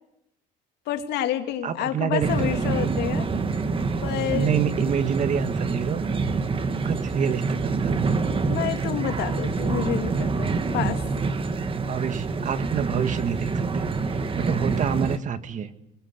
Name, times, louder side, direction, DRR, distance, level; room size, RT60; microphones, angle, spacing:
voice 1, 0.9-3.3 4.0-4.6 8.5-11.0, left 11 dB, 80° left, 6 dB, 2.5 m, -29 dB
voice 2, 1.6-2.5 4.3-6.0 6.8-8.2 11.8-15.7, right 8 dB, 50° right, 10 dB, 1.8 m, -27 dB
sound 1, 2.2-15.2, right 4 dB, 30° right, 1.7 m, -26 dB
27.5 x 22.0 x 6.7 m, 0.82 s
cardioid pair, 110°, 17 cm